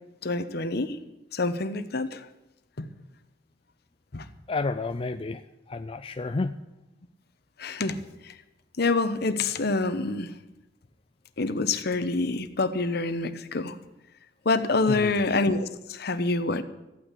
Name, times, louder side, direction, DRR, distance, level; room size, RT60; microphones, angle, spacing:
voice 1, 0.2-1.0 1.3-2.2 2.8-2.9 4.1-4.2 7.6-8.0 8.8-10.3 11.4-13.7 14.4-16.6, left 3 dB, 60° left, 11 dB, 0.9 m, -26 dB
voice 2, 4.5-5.4 5.7-6.6 14.9-15.1, left 3 dB, 30° left, 9 dB, 0.4 m, -30 dB
14.0 x 9.1 x 8.2 m, 0.99 s
head